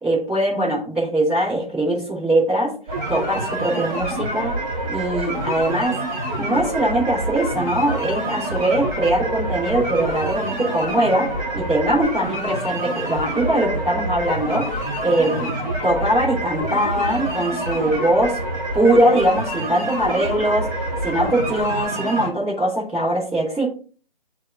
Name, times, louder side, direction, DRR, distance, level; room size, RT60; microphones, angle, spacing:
voice 1, 0.0-2.8 3.1-4.5 4.9-6.0 6.4-15.5 15.8-18.4 18.7-20.7 21.0-23.6, right 1 dB, ahead, -14 dB, 2.2 m, -21 dB
sound 1, 2.9-22.3, right 1 dB, 20° right, 3.3 m, -27 dB
8.4 x 3.1 x 3.7 m, 0.39 s
hypercardioid pair, 170°, 30 cm